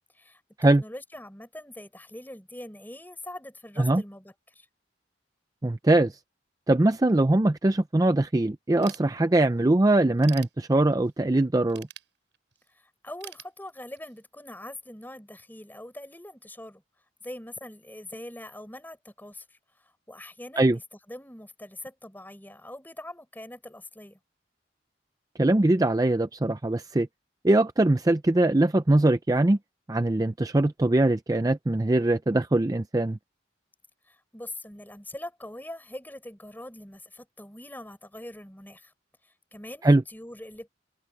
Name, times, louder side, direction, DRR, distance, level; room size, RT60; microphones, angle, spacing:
voice 1, 0.1-4.7 12.7-16.8 17.2-20.8 21.1-24.2 34.1-38.9 39.2-40.7, left 1 dB, 10° left, 5.4 m, -43 dB
voice 2, 5.6-6.2 6.7-11.9 20.6-20.8 25.4-27.1 27.4-29.6 29.9-33.2 39.8-40.0, right 2 dB, 20° right, 0.5 m, -22 dB
Ratchet pawl / Tools, 8.8-9.6 10.0-11.1 11.7-12.7 13.2-14.2, right 13 dB, 80° right, 6.8 m, -45 dB
head